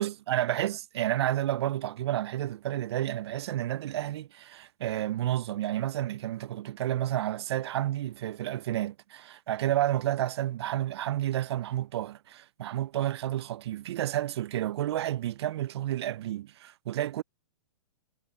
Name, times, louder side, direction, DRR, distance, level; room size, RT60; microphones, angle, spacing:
voice 1, 0.0-17.2, right 13 dB, 60° right, 0.4 m, -30 dB
hypercardioid pair, 145°, 16 cm